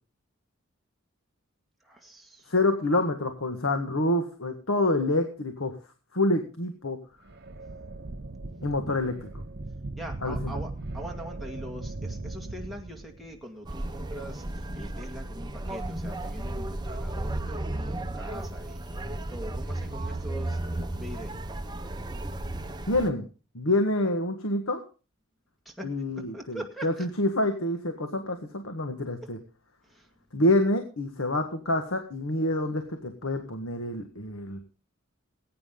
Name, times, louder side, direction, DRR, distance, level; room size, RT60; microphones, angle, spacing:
voice 1, 1.8-2.5 10.0-14.4 14.7-20.6 21.0-21.3 25.7-25.9 26.3-27.1 29.9-30.1, right 1 dB, ahead, 0 dB, 2.0 m, -42 dB
voice 2, 2.5-5.7 6.1-7.0 8.6-9.3 10.2-10.6 22.9-23.3 23.5-24.8 25.8-29.4 30.3-34.6, left 1 dB, 80° left, 6 dB, 1.7 m, -27 dB
sound 1, 7.2-13.4, right 2 dB, 50° right, 0.9 m, -38 dB
sound 2, 13.7-23.1, right 1 dB, 20° right, 1.0 m, -34 dB
20.0 x 9.6 x 3.8 m, 0.35 s
head